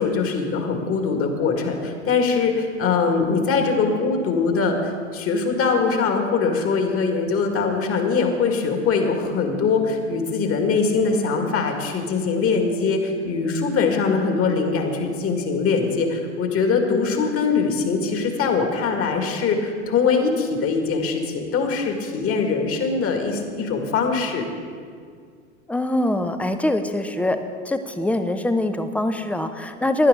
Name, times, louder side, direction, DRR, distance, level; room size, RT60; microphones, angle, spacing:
voice 1, 0.0-24.4, left 4 dB, 35° left, 4 dB, 2.1 m, -22 dB
voice 2, 25.7-27.4 27.7-30.1, left 1 dB, 5° left, 8 dB, 0.7 m, -23 dB
16.0 x 11.0 x 3.8 m, 2.1 s
hypercardioid pair, 85°, 39 cm